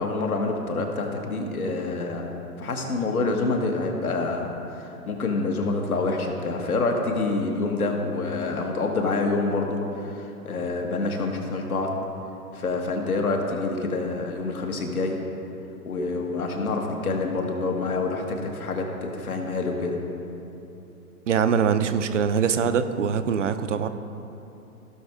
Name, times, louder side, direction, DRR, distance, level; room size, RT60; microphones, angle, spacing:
voice 1, 0.0-2.3 2.6-4.5 4.8-11.9 12.5-15.2 15.9-20.0, left 3 dB, 70° left, 1 dB, 1.7 m, -27 dB
voice 2, 21.3-23.9, right 7 dB, 55° right, 10 dB, 0.7 m, -23 dB
16.0 x 6.2 x 3.6 m, 2.9 s
figure-of-eight pair, 120°, 45 cm